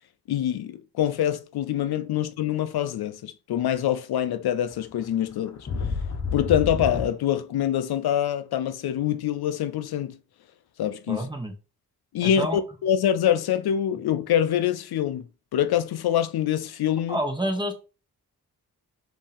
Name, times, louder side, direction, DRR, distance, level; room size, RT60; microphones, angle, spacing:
voice 1, 0.3-5.7 6.3-10.2 10.8-11.3 12.1-15.2 15.5-17.2, left 10 dB, 70° left, 0.5 m, -25 dB
sound 1, 4.7-4.8 5.2-7.1, left 4 dB, 40° left, 1.0 m, -29 dB
voice 2, 11.1-11.5 12.2-12.6 17.1-17.7, equal, 10° right, 1.2 m, -28 dB
5.1 x 2.8 x 3.5 m
cardioid pair, 55°, 39 cm